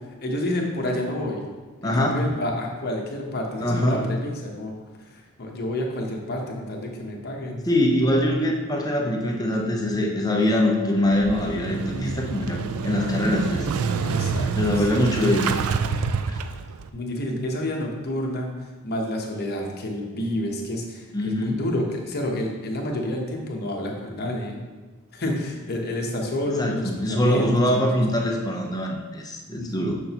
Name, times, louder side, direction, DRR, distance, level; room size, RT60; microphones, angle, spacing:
voice 1, 0.2-1.4 1.8-4.7 5.0-7.6 11.9-12.4 14.0-14.5 14.8-15.3 16.9-18.5 18.8-24.6 25.1-27.5 27.8-27.9 29.5-30.0, left 1 dB, 45° left, 0 dB, 1.0 m, -29 dB
voice 2, 1.8-2.2 3.6-4.0 7.7-13.7 14.6-15.5 16.3-16.4 21.1-21.6 26.6-30.0, left 1 dB, 15° left, 0 dB, 0.6 m, -23 dB
Motorcycle / Engine starting, 11.0-16.9, right 5 dB, 70° right, 0.4 m, -27 dB
6.6 x 6.2 x 2.9 m, 1.3 s
head